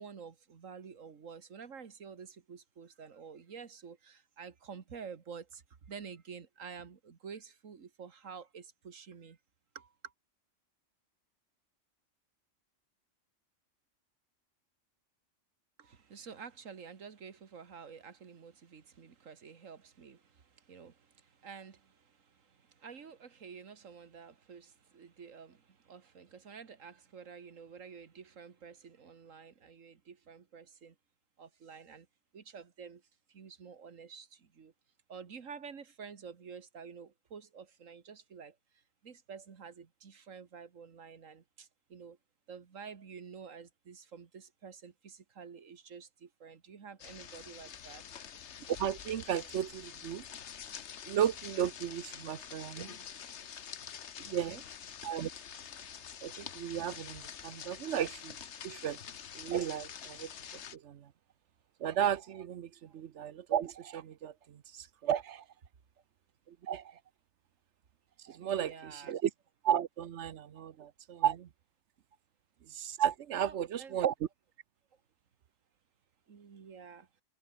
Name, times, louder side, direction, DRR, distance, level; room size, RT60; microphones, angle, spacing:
voice 1, 0.0-5.6 5.9-9.4 9.8-9.9 15.8-20.2 20.7-20.9 21.4-21.8 22.8-25.6 25.9-30.9 31.4-32.1 32.3-33.0 33.3-34.3 34.6-34.7 35.1-38.5 39.0-41.4 41.9-42.2 42.5-48.0 54.3-54.6 68.4-69.2 73.3-74.0 76.3-77.1, right 6 dB, 85° right, 2.0 m, -49 dB
sound 1, 47.0-60.8, left 8 dB, 60° left, 1.3 m, -47 dB
voice 2, 48.8-50.2 51.1-52.9 54.3-54.6 55.0-55.3 56.2-58.4 58.6-59.0 59.3-60.3 60.7-61.1 61.8-65.4 66.5-66.9 68.2-69.3 69.6-71.5 72.7-74.1, right 9 dB, 65° right, 1.0 m, -34 dB
open air
omnidirectional pair, 1.3 m